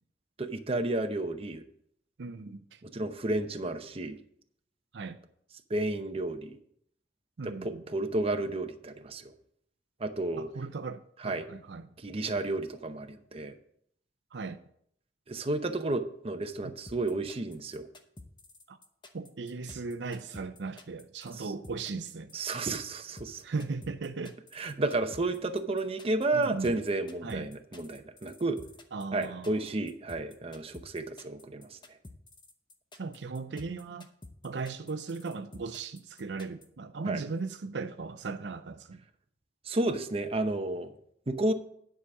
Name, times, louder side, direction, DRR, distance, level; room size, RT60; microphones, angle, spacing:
voice 1, 0.4-1.6 2.8-4.2 5.7-6.5 7.4-9.3 10.0-10.5 11.2-11.5 12.0-13.5 15.3-17.9 21.4-21.5 22.3-23.4 24.6-28.6 29.1-31.8 37.1-37.2 39.7-40.9 41.3-41.5, right 2 dB, 35° right, 0.8 m, -32 dB
voice 2, 2.2-2.8 4.9-5.2 7.4-7.8 10.4-11.9 14.3-14.6 16.6-16.7 18.7-18.8 19.1-22.3 23.4-24.4 26.3-26.8 27.2-27.5 28.9-29.6 33.0-34.1 34.4-39.0, right 4 dB, 70° right, 0.6 m, -37 dB
sound 1, 16.9-36.7, left 2 dB, 25° left, 0.9 m, -50 dB
10.0 x 5.0 x 7.1 m
head